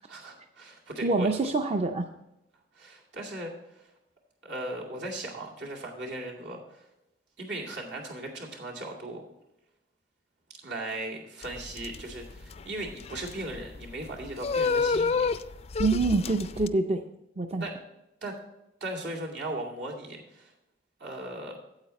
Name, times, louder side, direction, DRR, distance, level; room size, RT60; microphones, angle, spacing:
voice 1, 0.1-1.5 2.7-3.9 4.4-6.9 7.4-9.2 10.6-15.3 17.6-17.7 18.2-18.4 18.8-20.5 21.0-21.6, right 1 dB, 75° right, -2 dB, 2.3 m, -37 dB
voice 2, 1.0-2.1 15.8-17.1 17.4-17.6, right 3 dB, 35° right, 6 dB, 0.4 m, -26 dB
sound 1, 11.4-16.7, left 4 dB, 35° left, 0.3 m, -30 dB
8.9 x 8.1 x 4.2 m, 0.89 s
head